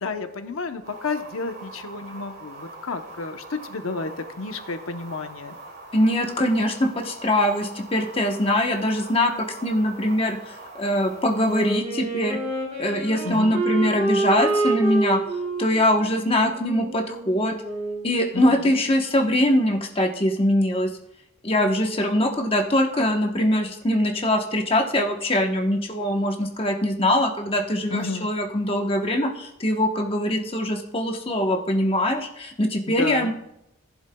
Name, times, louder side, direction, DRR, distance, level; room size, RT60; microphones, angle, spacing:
voice 1, 0.0-4.1 4.4-5.6 13.2-13.6 18.3-18.7 27.9-28.3 32.9-33.3, left 3 dB, 90° left, 7 dB, 0.8 m, -31 dB
sound 1, 0.8-11.8, right 2 dB, 50° right, 2.4 m, -43 dB
voice 2, 5.9-10.4 10.8-12.4 12.8-15.2 15.6-17.5 18.0-20.9 21.4-33.3, left 1 dB, 25° left, 2 dB, 1.0 m, -22 dB
Wind instrument woodwind instrument, 11.4-18.1, right 2 dB, 35° right, 3.9 m, -28 dB
15.5 x 11.0 x 2.3 m, 0.83 s
head